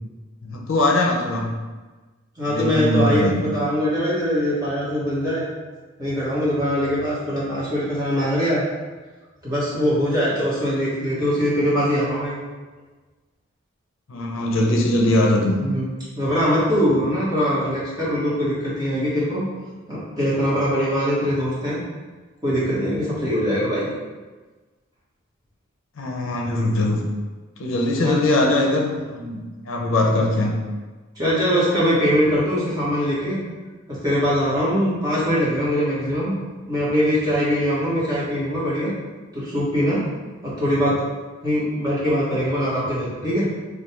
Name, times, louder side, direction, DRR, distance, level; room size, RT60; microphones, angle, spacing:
voice 1, 0.4-1.5 2.5-3.5 14.1-15.6 26.0-27.0 27.6-30.5, left 1 dB, 70° left, 0 dB, 0.5 m, -21 dB
voice 2, 2.4-5.5 6.0-8.6 9.4-12.4 15.6-15.9 16.1-19.4 19.9-21.8 22.4-23.9 27.9-28.2 30.0-30.2 31.1-33.4 33.9-36.3 36.7-38.9 39.3-40.0 40.4-41.1 41.4-43.5, equal, 20° right, -9 dB, 1.1 m, -22 dB
3.2 x 2.2 x 4.3 m, 1.3 s
head